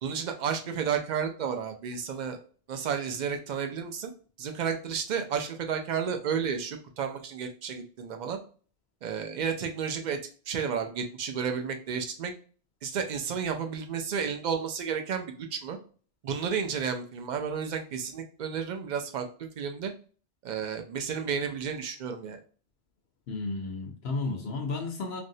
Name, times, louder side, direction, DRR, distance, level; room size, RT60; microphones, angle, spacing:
voice 1, 0.0-2.4 2.7-4.1 4.4-8.4 9.0-10.2 10.5-12.3 12.8-15.8 16.2-19.9 20.4-22.4, right 7 dB, 55° right, 5 dB, 0.5 m, -32 dB
voice 2, 23.3-25.2, left 3 dB, 75° left, 4 dB, 0.8 m, -33 dB
3.1 x 2.6 x 2.7 m, 0.41 s
omnidirectional pair, 1.1 m